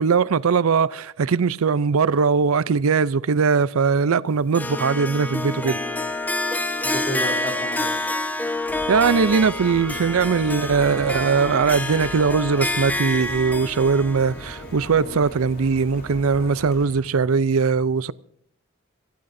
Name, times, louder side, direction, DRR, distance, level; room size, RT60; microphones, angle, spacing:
voice 1, 0.0-5.8 8.9-18.1, right 5 dB, 75° right, 0.5 m, -20 dB
Harp, 4.5-15.8, left 2 dB, 10° left, 1.0 m, -28 dB
voice 2, 6.8-8.0 15.0-15.2, equal, 25° left, 3.3 m, -32 dB
sound 1, 8.7-17.0, equal, 50° left, 4.0 m, -40 dB
26.0 x 16.5 x 2.6 m
head